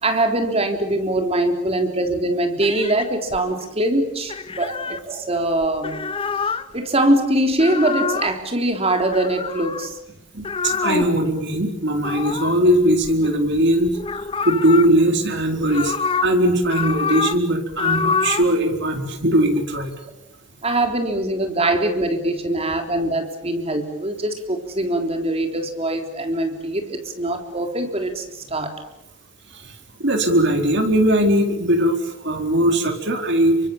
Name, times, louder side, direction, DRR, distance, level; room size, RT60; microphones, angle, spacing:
voice 1, 0.0-6.0 6.4-10.0 20.6-28.8, right 1 dB, 30° right, 5 dB, 3.6 m, -22 dB
sound 1, 2.6-3.6 4.3-5.0 5.6-6.7 7.5-8.4 9.1-9.9 10.4-11.2 12.0-13.6 13.9-14.9 15.4-16.3 16.6-17.4 17.7-18.5, left 5 dB, 25° left, 0.9 m, -26 dB
voice 2, 10.3-13.9 14.4-15.9 16.2-19.9 29.5-29.7 30.0-33.6, right 1 dB, 60° right, 5 dB, 4.3 m, -19 dB
30.0 x 24.5 x 7.2 m, 0.84 s
head